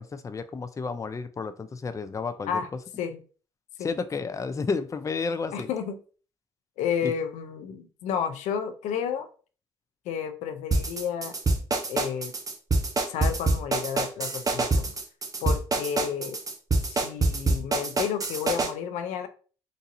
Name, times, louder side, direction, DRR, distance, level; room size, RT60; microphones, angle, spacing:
voice 1, 0.0-2.6 3.8-5.7 7.0-7.1, left 4 dB, 25° left, 11 dB, 0.4 m, -31 dB
voice 2, 5.5-6.0 6.8-9.3 10.1-11.4 11.9-12.3 13.1-14.9 15.4-16.4 16.8-19.3, left 7 dB, 80° left, 10 dB, 0.5 m, -31 dB
sound 1, 10.7-18.7, right 3 dB, 30° right, 0.8 m, -25 dB
4.0 x 2.6 x 2.6 m, 0.39 s
supercardioid pair, 60°, 12 cm